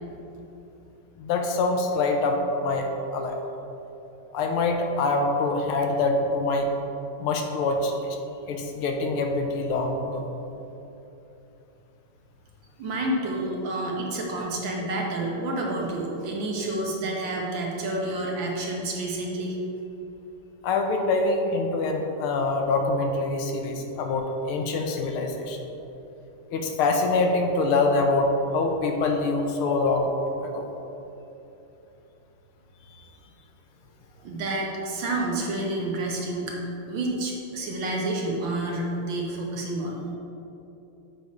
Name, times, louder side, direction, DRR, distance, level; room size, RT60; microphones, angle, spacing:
voice 1, 1.2-3.4 4.3-6.7 7.2-8.2 8.5-10.3 20.6-25.6 26.5-30.1 30.4-30.6, left 3 dB, 80° left, 3 dB, 1.5 m, -25 dB
voice 2, 12.8-19.6 34.2-36.6 36.9-40.0, right 2 dB, 65° right, -2 dB, 1.5 m, -29 dB
7.9 x 3.5 x 5.2 m, 2.9 s
omnidirectional pair, 2.4 m